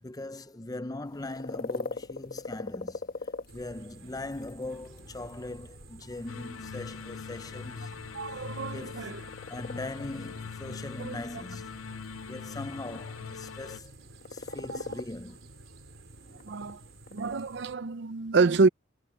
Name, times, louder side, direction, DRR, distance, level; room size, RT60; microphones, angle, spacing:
voice 1, 0.0-7.9 8.4-9.1 9.5-11.7 12.3-13.9 14.3-15.5 16.6-16.9, left 2 dB, 20° left, 0.6 m, -40 dB
sound 1, 1.0-17.7, left 3 dB, 50° left, 1.3 m, -42 dB
sound 2, 3.5-17.8, right 2 dB, 75° right, 3.5 m, -52 dB
sound 3, 6.3-13.8, left 6 dB, 80° left, 0.5 m, -42 dB
voice 2, 8.1-9.2 11.0-11.2 14.6-15.0 16.4-16.8 17.1-18.7, right 4 dB, 60° right, 0.6 m, -27 dB
head